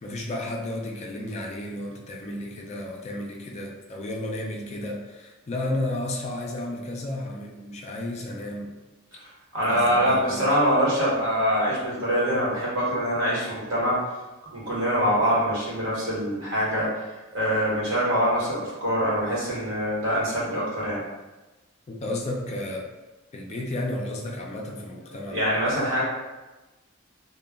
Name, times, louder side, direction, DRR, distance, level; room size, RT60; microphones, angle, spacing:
voice 1, 0.0-8.8 9.7-10.5 21.9-22.9 23.3-25.4, left 1 dB, 35° left, -1 dB, 0.3 m, -32 dB
voice 2, 9.5-14.0 14.5-16.9 17.3-21.0 25.3-26.0, equal, 65° right, -7 dB, 1.1 m, -24 dB
2.1 x 2.1 x 3.4 m, 1.1 s
head